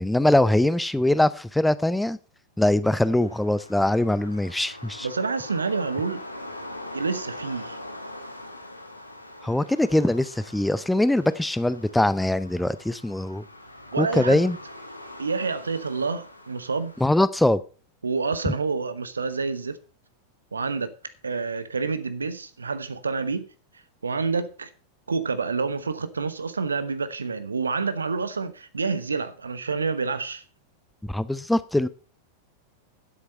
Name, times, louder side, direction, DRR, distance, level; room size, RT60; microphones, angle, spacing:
voice 1, 0.0-2.2 2.6-5.1 9.4-13.4 14.0-14.6 17.0-17.6 18.5-18.6 31.0-31.9, left 1 dB, 5° left, 0.5 m, -22 dB
sound 1, 2.8-17.2, left 1 dB, 85° left, 1.5 m, -42 dB
voice 2, 5.0-6.2 6.9-7.8 13.9-14.4 15.2-16.9 18.0-19.8 20.5-20.9 21.2-23.5 24.0-24.7 25.1-30.4, right 4 dB, 75° right, 1.0 m, -28 dB
9.8 x 8.1 x 5.4 m
figure-of-eight pair, 90°, 0 cm